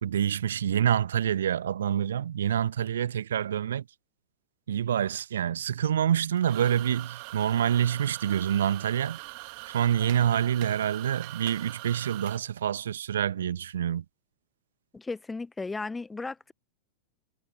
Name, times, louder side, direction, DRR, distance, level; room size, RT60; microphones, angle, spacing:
voice 1, 0.0-3.8 4.7-9.2 9.7-14.0, right 9 dB, 65° right, 1.2 m, -27 dB
sound 1, 6.3-12.4, right 37 dB, 45° right, 1.8 m, -42 dB
voice 2, 14.9-16.5, left 3 dB, 10° left, 0.9 m, -35 dB
figure-of-eight pair, 90°, 0 cm